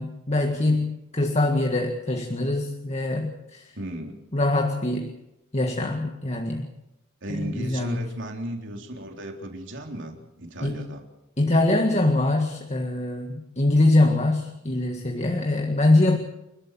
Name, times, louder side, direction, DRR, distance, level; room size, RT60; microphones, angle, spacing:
voice 1, 0.0-3.7 4.3-5.1 5.5-6.7 7.3-8.0 10.6-10.8 11.4-16.2, left 2 dB, 30° left, 3 dB, 1.8 m, -23 dB
voice 2, 3.8-4.2 7.2-11.0, right 1 dB, 60° right, 2 dB, 3.7 m, -35 dB
29.0 x 13.0 x 7.6 m, 0.90 s
head